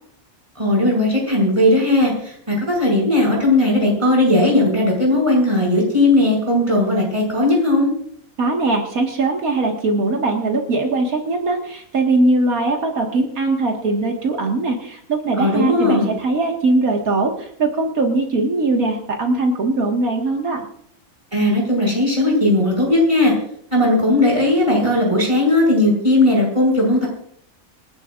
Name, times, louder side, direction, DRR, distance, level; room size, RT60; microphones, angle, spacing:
voice 1, 0.6-7.9 15.4-16.1 21.3-23.3 23.7-27.1, left 1 dB, 20° right, -2 dB, 6.6 m, -17 dB
voice 2, 8.4-20.6, right 2 dB, 90° right, 1 dB, 2.3 m, -20 dB
27.0 x 11.5 x 2.5 m, 0.65 s
omnidirectional pair, 1.5 m